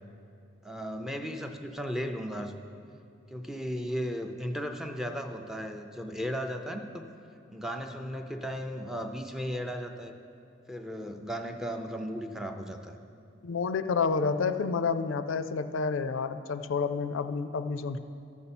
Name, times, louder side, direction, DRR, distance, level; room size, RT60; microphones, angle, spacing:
voice 1, 0.6-2.6 3.3-7.1 7.5-10.2 10.7-13.0, equal, ahead, 5 dB, 0.4 m, -35 dB
voice 2, 13.4-18.0, left 5 dB, 75° left, 11 dB, 0.4 m, -29 dB
13.5 x 6.9 x 4.2 m, 2.5 s
head